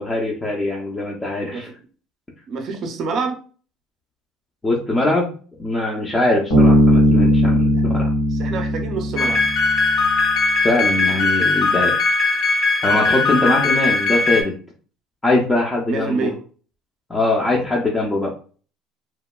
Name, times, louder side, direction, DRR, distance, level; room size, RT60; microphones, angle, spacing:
voice 1, 0.0-1.7 4.6-5.3 5.6-8.1 10.6-12.0 12.8-14.5 15.2-16.3 17.1-18.3, left 2 dB, 15° left, -2 dB, 0.4 m, -21 dB
voice 2, 2.5-3.4 7.7-7.9 8.3-9.4 15.9-16.4, right 4 dB, 45° right, 5 dB, 0.5 m, -26 dB
Bass guitar, 6.5-10.0, equal, 85° left, 1.5 m, -17 dB
sound 1, 9.2-14.4, left 3 dB, 60° left, 0.8 m, -19 dB
2.9 x 2.2 x 2.2 m, 0.40 s
cardioid pair, 135°, 0 cm